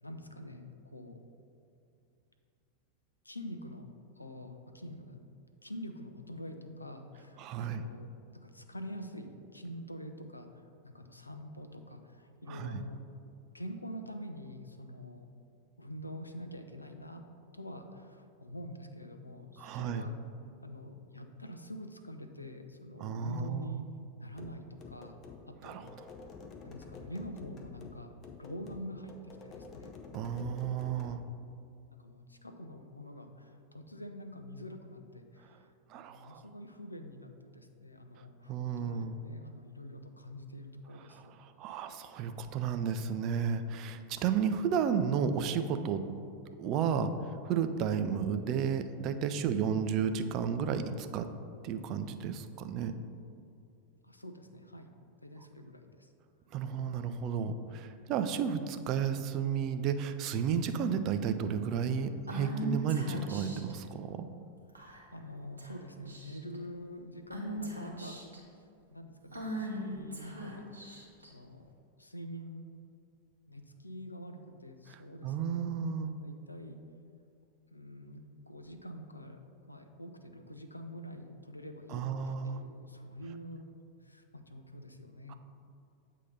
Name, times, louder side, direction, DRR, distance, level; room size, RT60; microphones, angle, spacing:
voice 1, 0.0-1.2 3.2-3.9 4.2-5.2 5.6-8.1 8.3-13.0 13.5-15.3 15.8-17.2 17.5-20.1 20.6-23.8 24.2-25.2 25.5-25.9 26.6-29.9 31.9-35.7 35.9-41.3 54.0-54.9 55.2-56.1 64.7-68.2 68.9-70.7 71.2-71.7 72.0-72.7 73.5-75.7 76.2-76.8 77.7-79.4 79.7-83.7 84.0-85.3, equal, 85° left, 6 dB, 0.4 m, -46 dB
voice 2, 7.4-7.8 12.5-12.8 19.6-20.1 23.0-23.8 25.6-25.8 30.1-31.2 35.9-36.4 38.5-39.1 41.6-46.0 46.6-47.1 47.4-51.3 51.6-52.9 56.5-64.3 75.2-76.1 81.9-82.6 85.3-85.4, right 7 dB, 40° right, 8 dB, 0.4 m, -32 dB
sound 1, 24.3-31.2, left 4 dB, 30° left, 0.6 m, -49 dB
Female speech woman speaking / Whispering, 62.3-63.7 64.7-65.2 65.6-65.7 66.0-66.6 67.3-68.4 69.3-71.3, equal, 80° right, 0.9 m, -39 dB
8.0 x 2.8 x 5.4 m, 2.5 s
figure-of-eight pair, 90°, 0 cm